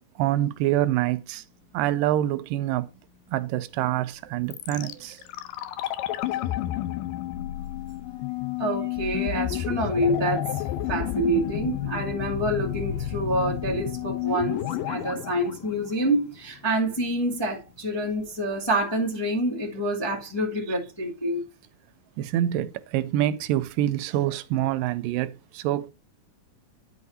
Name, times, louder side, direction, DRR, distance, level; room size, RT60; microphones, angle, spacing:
voice 1, 0.2-1.4 1.7-2.9 3.3-5.2 22.2-25.9, right 13 dB, 85° right, 2.3 m, -26 dB
sound 1, 4.5-16.5 16.8-16.9, left 13 dB, 90° left, 2.3 m, -31 dB
voice 2, 8.6-10.6 10.9-21.4, right 1 dB, 15° left, 1.1 m, -27 dB
10.5 x 4.8 x 4.2 m
omnidirectional pair, 3.9 m